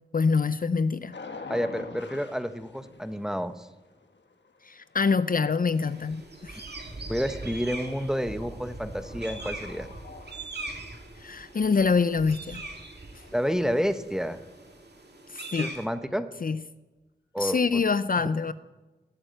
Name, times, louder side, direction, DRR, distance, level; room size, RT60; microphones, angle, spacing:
voice 1, 0.1-1.1 4.6-6.6 11.2-12.6 15.3-15.8 16.4-16.6 17.4-18.5, left 5 dB, 50° left, 0.5 m, -25 dB
sound 1, 1.1-11.9 12.2-15.3, left 3 dB, 85° left, 1.4 m, -49 dB
voice 2, 1.5-3.7 7.1-9.9 13.3-14.4 15.6-16.3 17.3-17.8, equal, 5° right, 1.1 m, -29 dB
sound 2, 5.7-15.9, right 2 dB, 65° right, 2.3 m, -41 dB
17.5 x 8.9 x 7.7 m
wide cardioid pair, 50°, 18 cm